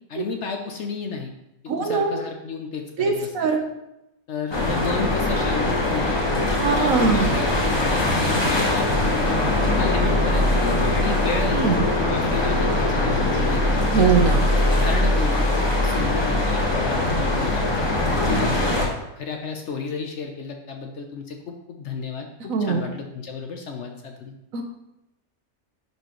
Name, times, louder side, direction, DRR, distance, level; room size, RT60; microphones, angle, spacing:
voice 1, 0.1-1.3 1.8-3.5 4.3-6.1 6.5-11.6 12.0-14.1 14.6-17.6 18.1-24.3, left 5 dB, 60° left, 3 dB, 0.9 m, -32 dB
voice 2, 1.7-2.2 3.0-3.6 6.5-7.4 11.5-11.8 13.9-14.5 16.0-16.1 18.3-18.5 22.5-22.9 24.5-24.6, right 5 dB, 65° right, 4 dB, 1.2 m, -22 dB
sound 1, 4.5-18.9, left 1 dB, 20° left, 1.1 m, -21 dB
10.5 x 4.4 x 3.0 m, 0.87 s
omnidirectional pair, 1.6 m